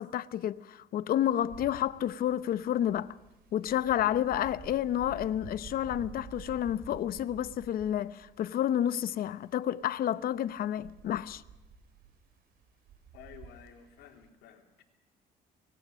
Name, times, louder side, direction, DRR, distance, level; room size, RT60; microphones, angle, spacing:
voice 1, 0.0-3.2 3.5-11.4, left 11 dB, 60° left, 0.9 m, -30 dB
Wind, 1.2-14.3, right 6 dB, 65° right, 3.8 m, -51 dB
voice 2, 13.1-14.8, left 8 dB, 85° left, 3.4 m, -53 dB
24.0 x 20.5 x 6.4 m
cardioid pair, 110°, 17 cm